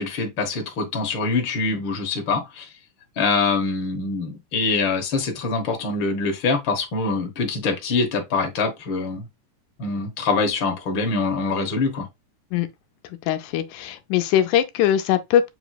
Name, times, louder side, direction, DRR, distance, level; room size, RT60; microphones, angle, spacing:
voice 1, 0.0-2.7 3.2-9.3 9.8-12.1, left 4 dB, 55° left, 1.4 m, -24 dB
voice 2, 13.3-15.5, left 10 dB, 85° left, 2.0 m, -21 dB
7.3 x 3.0 x 2.3 m
omnidirectional pair, 3.5 m